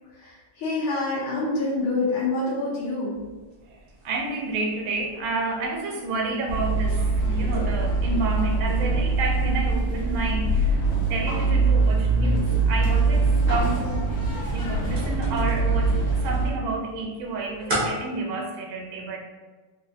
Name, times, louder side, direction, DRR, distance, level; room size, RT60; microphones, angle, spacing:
voice 1, 0.1-3.2, left 2 dB, 80° left, -8 dB, 1.5 m, -27 dB
sound 1, 3.1-18.0, equal, 65° right, 0.5 m, -40 dB
voice 2, 4.0-10.8 11.1-14.1 14.5-19.2, right 3 dB, 85° right, 2 dB, 1.4 m, -30 dB
sound 2, 6.5-16.5, right 3 dB, 50° left, 1.0 m, -23 dB
4.3 x 2.2 x 2.6 m, 1.3 s
omnidirectional pair, 2.2 m